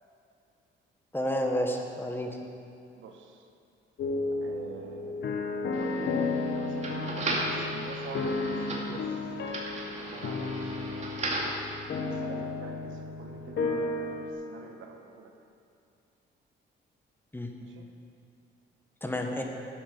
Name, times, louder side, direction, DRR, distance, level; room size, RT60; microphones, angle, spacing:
voice 1, 1.1-2.4 17.3-17.5 19.0-19.4, equal, 10° left, 2 dB, 1.3 m, -30 dB
voice 2, 2.9-3.5 4.4-5.2 5.8-9.3 10.0-11.2 12.1-15.4 17.6-17.9, right 5 dB, 80° right, 4 dB, 1.2 m, -46 dB
sound 1, 4.0-14.3, left 3 dB, 65° left, 1.3 m, -33 dB
sound 2, 5.7-11.6, right 2 dB, 35° right, 2.4 m, -36 dB
11.5 x 8.6 x 6.0 m, 2.4 s
cardioid pair, 90°, 20 cm